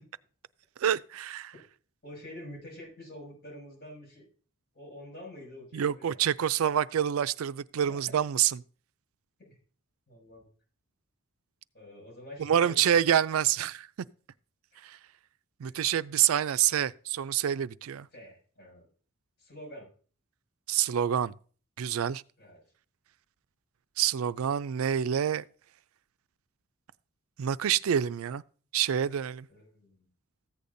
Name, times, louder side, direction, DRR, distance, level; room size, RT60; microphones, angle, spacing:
voice 1, 0.8-1.5 5.7-8.6 12.4-13.9 14.8-15.0 15.6-18.1 20.7-21.3 21.8-22.2 24.0-25.4 27.4-28.4 28.7-29.5, right 9 dB, 75° right, 0.4 m, -27 dB
voice 2, 2.0-4.3 4.7-6.2 7.9-8.2 9.4-9.6 10.1-10.4 11.7-13.3 14.7-14.8 15.6-15.8 18.1-18.9 19.4-19.9 22.4-22.6 29.5-30.1, left 1 dB, 45° left, 6.2 m, -47 dB
14.5 x 8.5 x 2.6 m
head